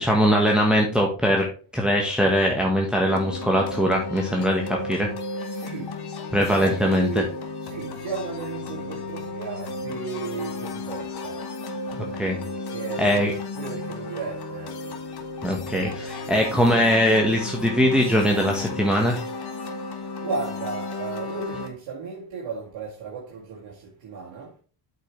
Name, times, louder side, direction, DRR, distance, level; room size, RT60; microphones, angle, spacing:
voice 1, 0.0-1.5 1.7-5.1 6.3-7.2 11.9-12.4 13.0-13.3 15.4-19.2, equal, ahead, 1.3 m, -21 dB
sound 1, 3.1-21.7, left 3 dB, 50° left, 1.6 m, -34 dB
voice 2, 5.4-6.0 6.4-11.4 12.7-15.0 20.2-24.5, right 4 dB, 65° right, 2.3 m, -35 dB
8.2 x 5.7 x 3.3 m
cardioid pair, 105°, 49 cm